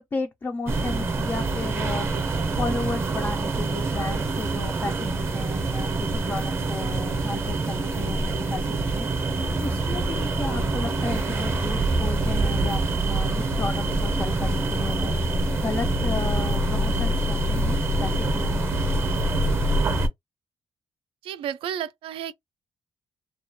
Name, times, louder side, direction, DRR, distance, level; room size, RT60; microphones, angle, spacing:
voice 1, 0.0-18.7, left 3 dB, 20° left, 0.3 m, -34 dB
sound 1, 0.7-20.1, right 2 dB, 25° right, 0.6 m, -25 dB
voice 2, 21.2-22.3, right 9 dB, 75° right, 0.3 m, -32 dB
2.3 x 2.1 x 2.9 m
cardioid pair, 170°, 10 cm